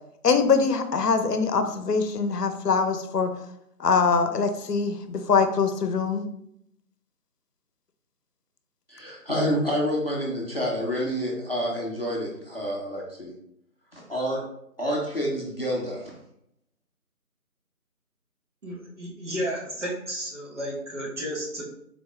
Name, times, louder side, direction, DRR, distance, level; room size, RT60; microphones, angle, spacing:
voice 1, 0.2-3.3 3.8-6.3, left 5 dB, 85° left, 8 dB, 0.7 m, -23 dB
voice 2, 8.9-13.3 13.9-14.4 14.8-16.1, equal, 40° left, -3 dB, 0.6 m, -28 dB
voice 3, 18.6-21.6, equal, 50° right, -4 dB, 1.3 m, -32 dB
3.8 x 3.4 x 2.3 m, 0.75 s
figure-of-eight pair, 160°, 47 cm